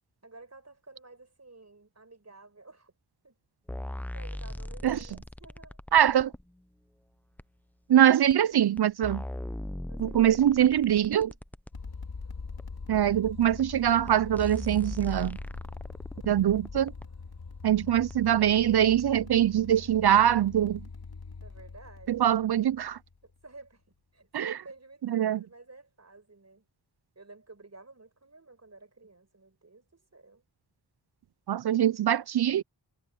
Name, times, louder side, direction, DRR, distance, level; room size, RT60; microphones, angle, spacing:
voice 1, 0.2-2.9 3.2-3.4 4.1-5.8 9.9-11.3 21.4-22.1 23.2-23.8 24.1-26.7 27.2-30.4, right 3 dB, 35° right, 5.5 m, -52 dB
sound 1, 3.7-6.4 7.4-7.5 8.3-8.4 8.8-11.7 12.6-12.7 13.6-13.7 14.1-14.2 14.4-17.1 18.1-18.2, left 1 dB, 5° left, 0.6 m, -39 dB
voice 2, 5.9-6.3 7.9-9.2 10.0-11.3 12.9-15.4 16.3-16.9 17.6-20.8 22.1-23.0 24.3-24.6 25.1-25.4 31.5-32.6, right 10 dB, 60° right, 0.5 m, -23 dB
sound 2, 11.7-23.4, left 4 dB, 55° left, 2.9 m, -43 dB
cardioid pair, 55°, 44 cm